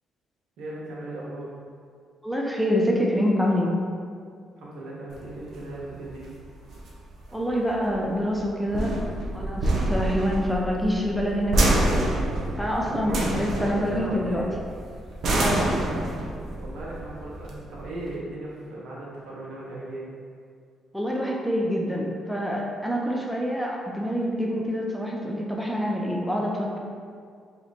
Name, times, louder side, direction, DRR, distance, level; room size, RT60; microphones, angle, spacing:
voice 1, 0.6-1.5 4.6-6.2 12.8-14.4 16.6-20.1, right 1 dB, 80° right, -5 dB, 1.0 m, -37 dB
voice 2, 2.2-3.7 7.3-9.0 9.3-11.9 12.6-14.5 15.4-15.7 20.9-26.8, equal, ahead, -2 dB, 0.5 m, -26 dB
sound 1, 5.1-18.1, right 1 dB, 65° right, 0.7 m, -27 dB
3.0 x 2.9 x 4.0 m, 2.2 s
cardioid pair, 90°, 0 cm